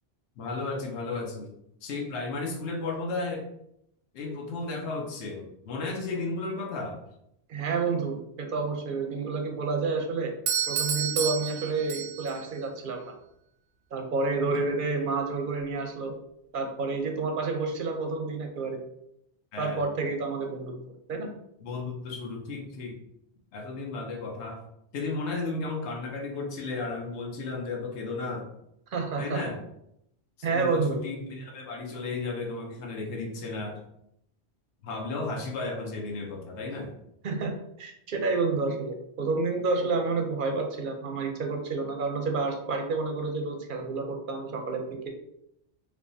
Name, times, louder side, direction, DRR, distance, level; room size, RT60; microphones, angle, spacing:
voice 1, 0.4-1.5 1.8-3.5 4.1-7.0 14.4-14.6 19.5-19.8 21.6-23.0 23.5-24.6 24.9-28.5 29.2-29.6 30.4-33.8 34.8-36.9, left 3 dB, 75° left, 0 dB, 1.0 m, -34 dB
voice 2, 7.5-10.3 10.7-13.1 13.9-16.2 16.5-18.8 19.6-20.7 21.1-21.3 28.9-29.4 30.4-31.0 37.2-37.5 37.8-45.1, right 4 dB, 60° right, 4 dB, 0.6 m, -29 dB
Doorbell, 10.5-12.5, right 8 dB, 90° right, 0.9 m, -30 dB
4.6 x 2.2 x 2.6 m, 0.78 s
omnidirectional pair, 1.2 m